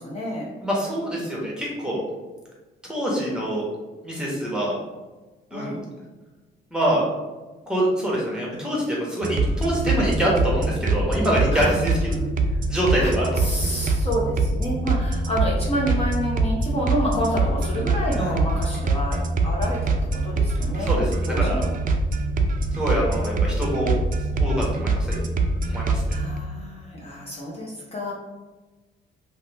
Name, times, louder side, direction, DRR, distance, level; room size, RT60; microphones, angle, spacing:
voice 1, 0.0-0.5 5.5-5.8 11.5-11.8 13.0-21.0 21.3-21.7 26.1-28.1, equal, 30° left, -4 dB, 0.6 m, -29 dB
voice 2, 0.6-2.0 2.9-3.6 4.0-4.7 5.5-5.8 6.7-7.0 7.7-12.1 12.7-13.5 18.2-18.4 20.9-21.6 22.7-24.0 24.4-25.2 25.7-26.2, right 1 dB, 5° right, -4 dB, 1.0 m, -25 dB
sound 1, 9.2-26.4, right 2 dB, 45° right, 0.4 m, -24 dB
2.6 x 2.1 x 3.2 m, 1.2 s
cardioid pair, 90°, 20 cm